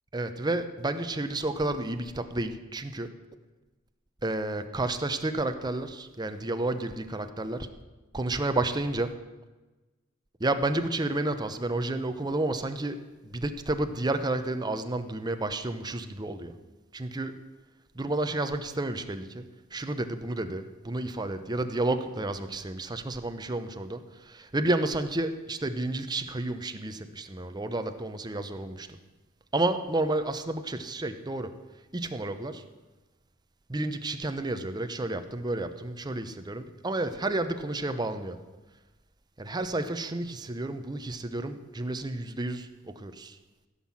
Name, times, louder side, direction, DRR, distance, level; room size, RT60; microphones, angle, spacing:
voice 1, 0.1-3.1 4.2-7.7 8.1-9.1 10.4-13.0 13.2-16.5 16.9-17.3 17.9-19.4 19.7-29.0 29.5-31.5 31.9-32.6 33.7-38.4 39.4-43.4, right 2 dB, 20° right, 8 dB, 0.8 m, -31 dB
15.5 x 5.8 x 7.3 m, 1.2 s
head